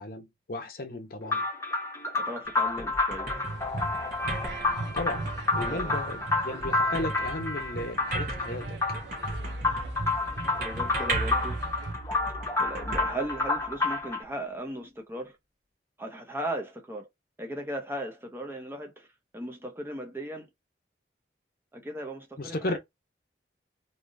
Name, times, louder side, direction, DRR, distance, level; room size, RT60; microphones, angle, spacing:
voice 1, 0.0-1.4 4.9-8.8 22.4-22.8, left 2 dB, 55° left, 0.7 m, -35 dB
sound 1, 1.3-14.2, left 3 dB, 15° left, 0.9 m, -30 dB
voice 2, 2.1-3.3 5.7-5.9 10.6-11.6 12.6-15.4 16.0-17.1 17.4-19.1 19.3-20.5 21.7-22.8, right 1 dB, 15° right, 0.7 m, -37 dB
sound 2, 2.4-13.9, right 2 dB, 50° right, 1.2 m, -37 dB
sound 3, 3.4-11.9, right 2 dB, 80° right, 0.8 m, -39 dB
3.3 x 2.7 x 2.5 m
head